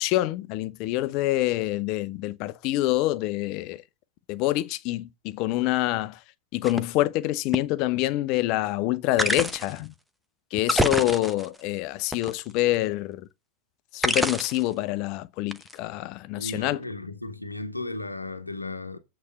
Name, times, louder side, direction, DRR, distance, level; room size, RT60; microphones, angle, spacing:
voice 1, 0.0-3.8 4.3-6.2 6.5-9.9 10.5-13.3 13.9-16.8, left 16 dB, 40° left, 0.7 m, -26 dB
sound 1, 6.6-6.8 7.5-7.6 9.2-9.8 10.6-11.6 12.1-12.7 14.0-14.7 15.5-15.7, equal, ahead, 0.9 m, -26 dB
voice 2, 16.4-19.0, left 2 dB, 85° left, 1.0 m, -35 dB
8.4 x 4.2 x 6.8 m
figure-of-eight pair, 90°, 0 cm